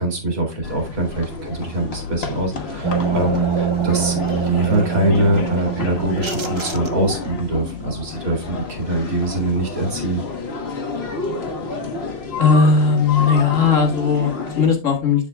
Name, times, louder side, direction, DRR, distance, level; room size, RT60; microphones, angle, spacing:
voice 1, 0.0-10.2, right 1 dB, 75° right, 2 dB, 2.5 m, -23 dB
sound 1, 0.6-14.7, left 3 dB, 50° left, 1.4 m, -30 dB
sound 2, 2.8-7.4, right 7 dB, 35° right, 0.5 m, -24 dB
voice 2, 12.4-15.3, left 5 dB, 65° left, 2 dB, 1.9 m, -17 dB
7.5 x 7.2 x 2.3 m, 0.29 s
omnidirectional pair, 1.5 m